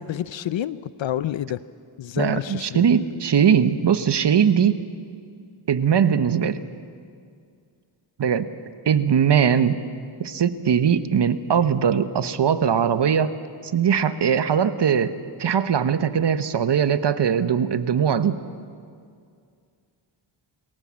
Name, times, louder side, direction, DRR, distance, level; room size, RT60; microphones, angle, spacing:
voice 1, 0.0-1.6 2.0-2.8, left 11 dB, 65° left, 16 dB, 0.7 m, -28 dB
voice 2, 2.2-4.8 5.7-6.6 8.2-8.4 8.8-9.8 10.2-13.3 13.7-18.4, right 7 dB, 55° right, 12 dB, 1.1 m, -20 dB
23.0 x 17.5 x 7.5 m, 2.3 s
cardioid pair, 65°, 50 cm